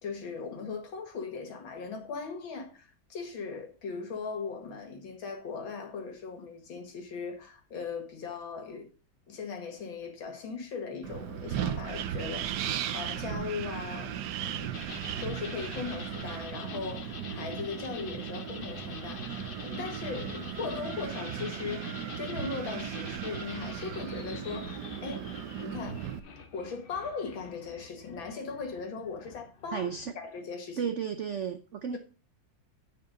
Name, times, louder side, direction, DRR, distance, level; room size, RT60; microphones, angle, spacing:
voice 1, 0.0-8.9 9.3-14.7 15.2-26.0 26.5-30.8, left 5 dB, 80° left, 2.6 m, -39 dB
Wind, 11.0-26.2, right 9 dB, 65° right, 1.2 m, -37 dB
sound 1, 14.7-30.3, left 5 dB, 50° left, 0.6 m, -46 dB
voice 2, 29.7-30.1 30.8-32.0, right 7 dB, 90° right, 0.6 m, -33 dB
9.2 x 5.8 x 5.2 m
omnidirectional pair, 2.1 m